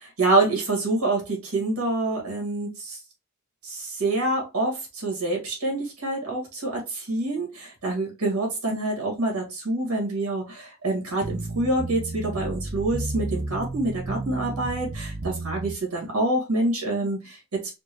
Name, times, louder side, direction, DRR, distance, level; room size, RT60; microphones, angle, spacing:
voice 1, 0.0-3.0 3.6-17.4, right 2 dB, 70° right, 0 dB, 2.0 m, -26 dB
sound 1, 11.2-15.8, right 2 dB, 30° right, 0.6 m, -32 dB
4.4 x 2.4 x 3.0 m, 0.27 s
head